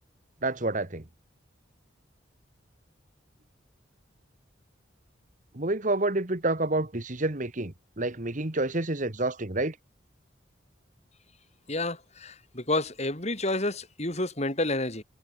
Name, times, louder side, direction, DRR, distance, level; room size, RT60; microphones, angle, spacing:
voice 1, 0.4-1.0 5.5-9.8, right 2 dB, 40° right, 1.8 m, -28 dB
voice 2, 11.7-15.0, left 2 dB, 35° left, 5.2 m, -29 dB
head